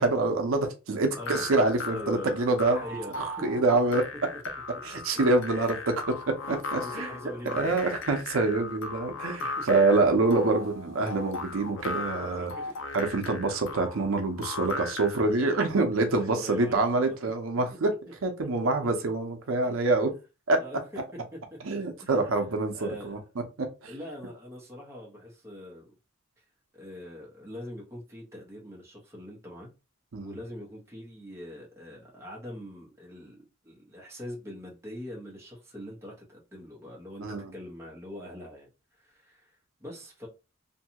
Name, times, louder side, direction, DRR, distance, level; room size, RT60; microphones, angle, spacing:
voice 1, 0.0-2.8 3.2-4.0 4.8-7.1 7.5-12.5 12.9-17.9 18.2-20.1 20.5-20.6 21.6-23.2 23.6-23.9 30.1-30.3 37.2-37.5, right 3 dB, 75° right, 0.6 m, -26 dB
sound 1, 1.1-15.3, left 3 dB, 65° left, 0.4 m, -38 dB
voice 2, 1.2-1.5 1.9-2.4 2.7-3.6 5.6-5.7 6.4-7.9 9.4-9.5 12.3-12.9 15.4-15.8 16.1-17.1 18.6-18.7 19.7-19.9 20.6-21.0 21.7-22.3 22.7-23.2 23.9-25.9 26.4-26.5 26.7-29.7 30.1-40.3, left 1 dB, 10° right, 0.8 m, -43 dB
2.6 x 2.3 x 2.8 m
head